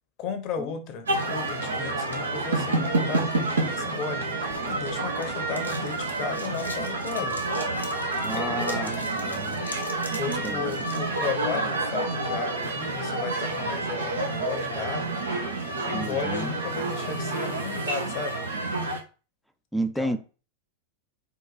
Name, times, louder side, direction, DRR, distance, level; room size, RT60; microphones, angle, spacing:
voice 1, 0.2-7.4 8.3-9.1 10.2-15.4 15.9-18.4 19.7-20.2, left 6 dB, 40° left, 0.7 m, -34 dB
sound 1, 1.1-19.0, right 2 dB, 70° right, 0.8 m, -29 dB
sound 2, 4.4-11.0, left 1 dB, 85° left, 0.7 m, -44 dB
voice 2, 8.2-9.6 10.4-10.7 15.9-16.5 19.7-20.2, right 1 dB, ahead, 0.4 m, -32 dB
3.9 x 2.5 x 4.0 m
figure-of-eight pair, 90°, 0 cm